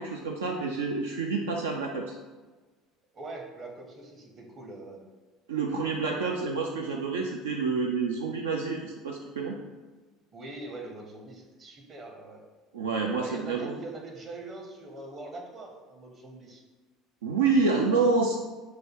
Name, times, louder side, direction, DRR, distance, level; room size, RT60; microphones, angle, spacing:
voice 1, 0.0-2.2 5.5-9.6 12.7-13.7 17.2-18.4, right 4 dB, 80° right, 1 dB, 0.3 m, -28 dB
voice 2, 3.1-5.0 10.3-12.4 13.2-16.6, right 2 dB, 40° right, 1 dB, 0.9 m, -42 dB
4.7 x 2.3 x 4.5 m, 1.3 s
hypercardioid pair, 65°, 0 cm